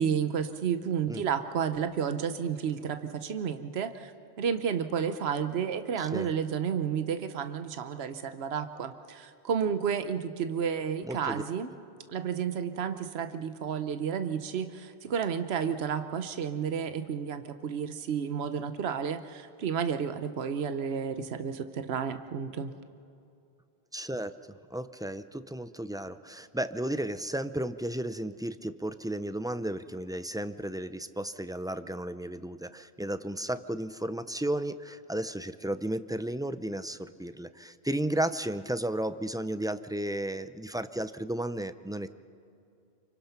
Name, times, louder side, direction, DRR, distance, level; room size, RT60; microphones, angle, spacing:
voice 1, 0.0-4.1 4.4-11.7 12.1-22.7, right 7 dB, 80° right, 9 dB, 1.1 m, -31 dB
voice 2, 6.0-6.3 11.0-11.4 23.9-24.3 24.7-42.1, right 1 dB, 5° right, 11 dB, 0.3 m, -33 dB
28.5 x 24.5 x 5.8 m, 2.6 s
omnidirectional pair, 1.1 m